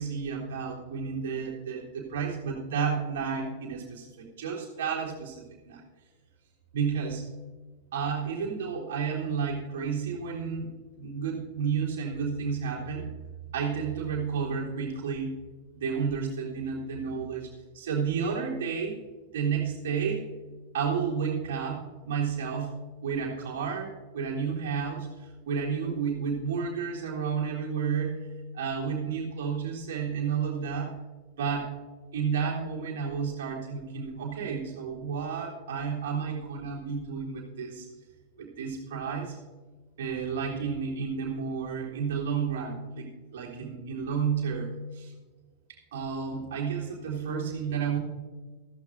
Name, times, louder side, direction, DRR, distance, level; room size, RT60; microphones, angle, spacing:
voice 1, 0.0-5.8 6.7-7.2 7.9-10.7 11.0-13.1 13.5-15.4 15.7-18.9 19.3-20.3 20.7-31.0 31.4-31.8 32.1-37.9 38.4-39.4 40.0-43.1 43.3-45.1 45.9-48.0, right 6 dB, 60° right, -2 dB, 3.4 m, -31 dB
15.0 x 14.5 x 2.6 m, 1.3 s
figure-of-eight pair, 90°, 0 cm